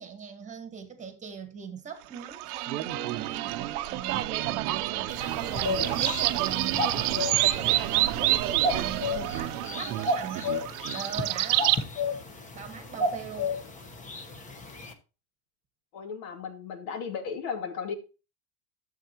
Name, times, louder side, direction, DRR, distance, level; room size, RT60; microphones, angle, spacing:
voice 1, 0.0-10.6 10.9-11.7 12.5-13.6, right 7 dB, 15° right, 1.5 m, -41 dB
sound 1, 2.1-11.8, right 16 dB, 70° right, 0.8 m, -28 dB
sound 2, 5.1-14.9, left 2 dB, 15° left, 1.1 m, -33 dB
voice 2, 15.9-18.0, left 6 dB, 60° left, 2.6 m, -35 dB
11.5 x 7.7 x 3.0 m
supercardioid pair, 145°, 47 cm